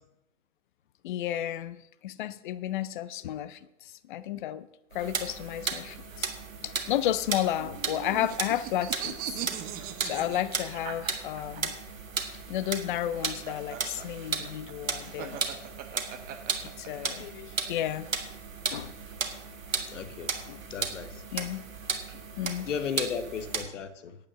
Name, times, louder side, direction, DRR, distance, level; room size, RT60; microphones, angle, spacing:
voice 1, 1.0-1.8 2.0-4.7 4.9-6.3 6.6-9.4 10.0-11.7 12.5-15.4 16.6-18.1 18.7-18.9 20.5-20.6 21.3-21.6 22.4-22.7, left 12 dB, 40° left, 0.6 m, -32 dB
sound 1, 4.9-23.6, right 5 dB, 85° right, 1.7 m, -35 dB
sound 2, 7.6-11.6 12.9-17.1, right 11 dB, 20° right, 1.1 m, -39 dB
voice 2, 19.9-20.3 20.7-21.2 22.7-24.2, left 7 dB, 70° left, 1.3 m, -35 dB
9.1 x 8.6 x 6.4 m
hypercardioid pair, 125°, 39 cm